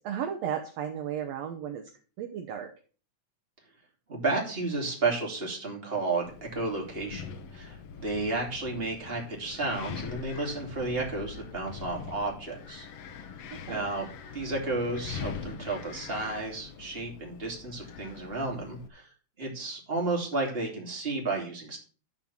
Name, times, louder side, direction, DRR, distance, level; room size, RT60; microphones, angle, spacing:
voice 1, 0.0-1.8 2.2-2.7 13.6-13.9, right 9 dB, 65° right, 4 dB, 1.9 m, -34 dB
voice 2, 4.1-6.3 6.5-7.3 7.5-12.9 13.7-14.1 14.3-19.1 19.4-21.8, right 3 dB, 20° right, 0 dB, 2.8 m, -32 dB
Wind, 6.2-18.9, left 7 dB, 60° left, 1.9 m, -43 dB
12.0 x 4.4 x 7.2 m, 0.39 s
omnidirectional pair, 3.4 m